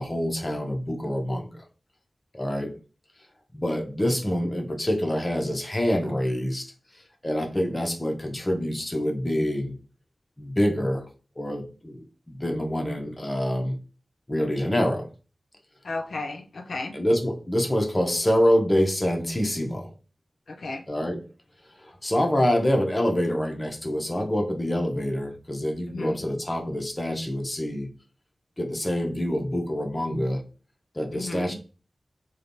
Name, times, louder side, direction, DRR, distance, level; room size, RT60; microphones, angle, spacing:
voice 1, 0.0-1.5 2.3-2.7 3.5-6.7 7.2-9.7 10.4-11.0 11.4-12.0 12.3-13.8 14.3-15.1 16.9-19.9 20.9-21.2 21.8-27.9 28.6-30.4 30.9-31.5, equal, 20° left, 2 dB, 0.6 m, -26 dB
voice 2, 15.8-16.9 20.5-20.8 25.9-26.2 31.1-31.5, left 3 dB, 85° left, 4 dB, 0.4 m, -34 dB
3.2 x 2.2 x 2.6 m, 0.35 s
wide cardioid pair, 100°, 0 cm